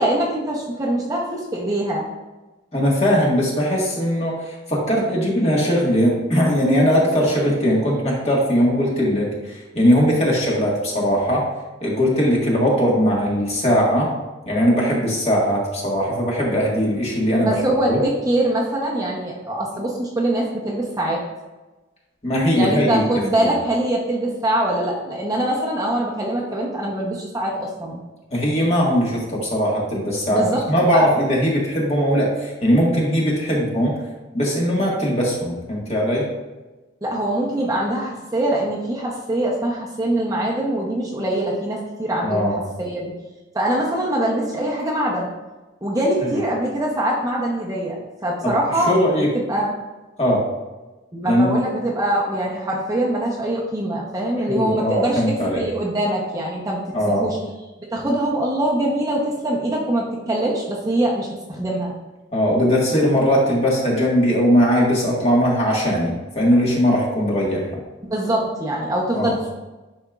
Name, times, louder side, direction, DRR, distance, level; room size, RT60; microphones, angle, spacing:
voice 1, 0.0-2.0 17.4-21.2 22.5-28.0 30.3-30.6 30.9-31.1 37.0-43.1 43.5-45.3 45.8-48.0 48.2-49.7 51.1-55.2 55.6-56.8 57.1-57.4 57.9-61.9 68.0-69.5, right 1 dB, 15° right, -3 dB, 0.8 m, -23 dB
voice 2, 2.7-11.5 11.8-14.1 14.5-17.6 17.9-18.0 22.2-23.0 23.4-23.5 28.3-33.9 34.3-36.3 42.2-42.6 46.2-46.4 48.4-48.6 48.9-49.3 50.2-50.5 51.2-51.6 54.5-55.6 56.9-57.3 62.3-67.7 69.1-69.3, equal, 30° left, -3 dB, 1.6 m, -19 dB
10.5 x 4.3 x 2.4 m, 1.1 s
head